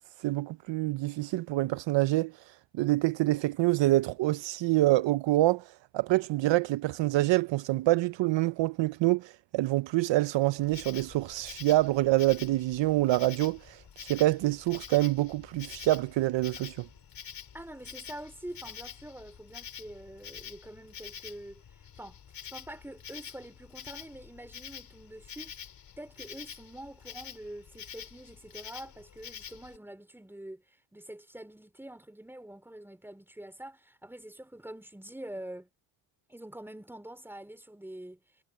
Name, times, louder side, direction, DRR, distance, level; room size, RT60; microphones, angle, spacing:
voice 1, 0.0-2.3 2.7-16.9, right 17 dB, 70° right, 0.6 m, -26 dB
Insect, 10.6-29.8, left 8 dB, 50° left, 3.9 m, -47 dB
voice 2, 17.5-22.2 22.5-25.5 26.0-35.7 36.3-38.2, right 1 dB, 5° right, 3.9 m, -45 dB
cardioid pair, 140°, 46 cm